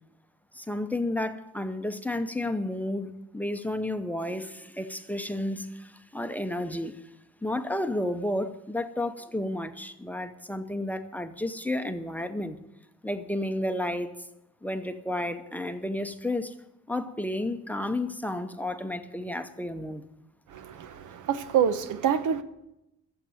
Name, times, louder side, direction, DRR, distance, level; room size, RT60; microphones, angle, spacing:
voice 1, 0.5-7.0 7.4-12.6 13.0-14.1 14.6-16.5 16.9-20.0, left 1 dB, 5° left, 0.7 m, -32 dB
voice 2, 20.5-22.4, right 8 dB, 90° right, 0.9 m, -27 dB
12.0 x 7.4 x 9.0 m
cardioid pair, 130°, 30 cm